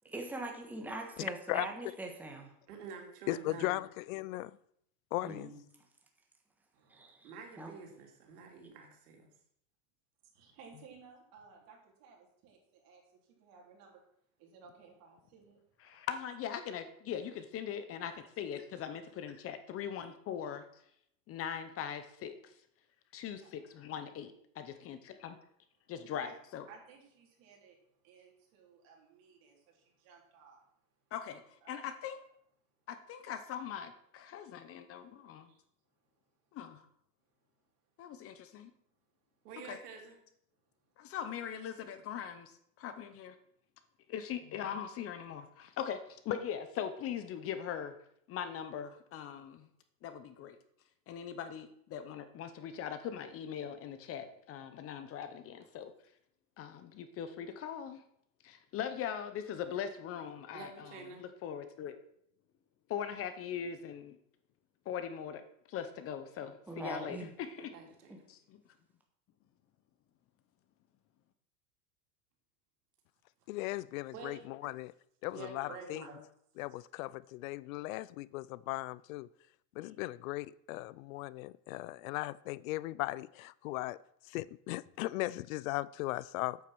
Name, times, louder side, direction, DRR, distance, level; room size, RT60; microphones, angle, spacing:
voice 1, 0.1-2.5 5.2-5.6 6.9-7.3 7.6-7.7 66.7-67.3 68.1-68.2, right 2 dB, 5° right, 1.5 m, -42 dB
voice 2, 2.7-3.8 7.2-9.3 39.4-40.2 44.4-44.5 60.5-61.2 67.6-68.1 74.1-74.7 75.3-76.2 79.8-79.9, right 4 dB, 80° right, 3.1 m, -48 dB
voice 3, 3.3-4.6 5.1-5.5 73.5-74.9 75.2-76.0 76.6-79.3 79.8-84.0 84.3-86.7, left 18 dB, 65° left, 0.5 m, -37 dB
voice 4, 6.7-7.1 8.3-8.4 10.3-13.0 13.4-14.0 14.4-16.0 18.4-18.5 20.0-20.1 23.4-23.7 26.1-26.4 26.7-27.8 28.0-30.6 31.6-31.9 35.3-35.6, right 5 dB, 50° right, 4.0 m, -58 dB
voice 5, 15.8-20.6 21.3-22.5 23.1-25.4 25.9-26.6 31.1-31.4 31.7-32.2 32.9-35.5 36.5-36.8 38.0-38.7 39.7-39.8 41.0-43.4 44.1-47.9 48.3-49.7 50.0-50.6 51.1-55.9 56.6-58.0 58.4-61.9 62.9-64.2 64.9-65.4 65.7-67.7 68.3-68.6, left 8 dB, 30° left, 0.8 m, -41 dB
8.6 x 8.4 x 6.1 m
supercardioid pair, 140°, 45 cm